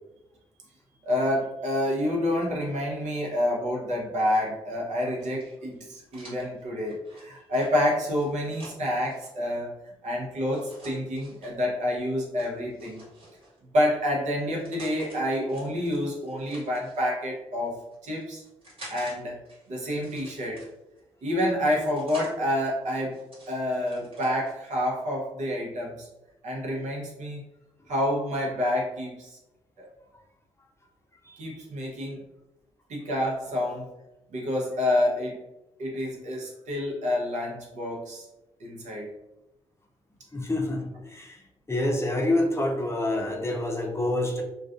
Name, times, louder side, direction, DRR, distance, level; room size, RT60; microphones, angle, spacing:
voice 1, 1.0-9.8 10.0-13.0 13.7-18.4 18.9-19.4 19.7-20.7 21.2-23.2 23.5-26.1 26.4-27.4 27.9-29.4 29.8-29.9 31.4-32.2 32.9-33.9 34.3-35.4 35.8-38.2 38.6-39.1, left 1 dB, 65° right, -2 dB, 0.8 m, -28 dB
sound 1, 5.2-9.3 10.5-11.5 12.4-13.6 14.3-15.2 15.5-17.0 17.7-19.2 19.5-21.0 21.6-22.4 22.8-24.5, right 1 dB, 45° right, 1.3 m, -49 dB
voice 2, 40.3-41.4 41.7-44.4, left 1 dB, 20° left, 0 dB, 0.6 m, -27 dB
2.3 x 2.3 x 2.4 m, 0.94 s
hypercardioid pair, 45°, 13 cm